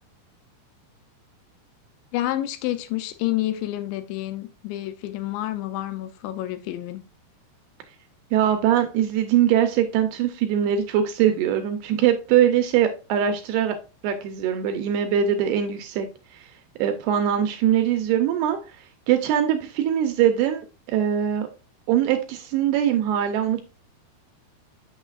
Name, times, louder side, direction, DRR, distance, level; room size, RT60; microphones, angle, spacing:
voice 1, 2.1-7.0, left 14 dB, 90° left, 3.0 m, -29 dB
voice 2, 8.3-13.8 14.0-16.1 16.8-18.6 19.1-21.5 21.9-23.6, right 10 dB, 80° right, 2.4 m, -22 dB
6.5 x 6.2 x 2.4 m
omnidirectional pair, 5.0 m